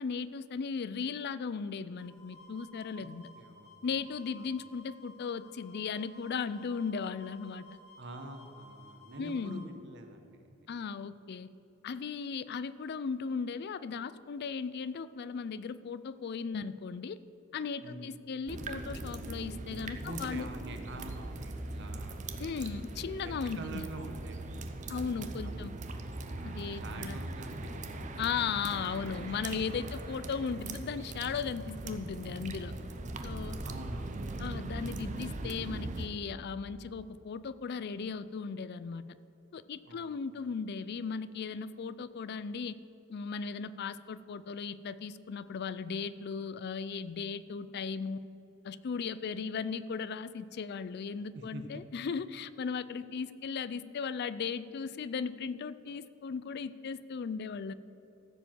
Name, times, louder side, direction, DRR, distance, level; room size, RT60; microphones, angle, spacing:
voice 1, 0.0-3.3 3.8-7.8 9.2-9.6 10.7-11.5 11.8-17.2 17.5-20.5 22.4-23.8 24.9-25.7 26.4-27.2 28.2-32.7 33.2-33.6 34.4-39.0 39.5-42.8 43.1-48.2 48.6-57.7, left 5 dB, 55° left, 15 dB, 0.4 m, -37 dB
sound 1, 2.0-9.7, left 1 dB, 85° left, 2.0 m, -55 dB
voice 2, 3.4-3.7 4.4-4.5 8.0-10.7 17.8-18.1 20.0-22.4 23.2-25.9 26.4-28.7 33.6-34.3 39.8-40.1 51.3-51.8, right 1 dB, 60° right, 5 dB, 1.1 m, -46 dB
sound 2, 18.5-36.1, right 2 dB, 35° right, 0.7 m, -40 dB
14.5 x 5.2 x 7.5 m, 2.8 s
head